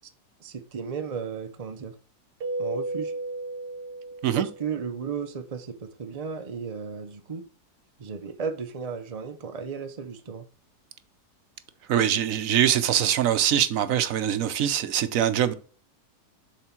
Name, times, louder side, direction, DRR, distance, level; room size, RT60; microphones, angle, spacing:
voice 1, 0.4-1.9 2.6-3.1 4.3-7.4 8.0-10.4, right 6 dB, 45° right, 0.5 m, -34 dB
Keyboard (musical), 2.4-4.9, right 2 dB, 90° right, 1.6 m, -34 dB
voice 2, 11.9-15.5, right 10 dB, 65° right, 1.0 m, -23 dB
7.3 x 3.7 x 5.9 m
omnidirectional pair, 1.7 m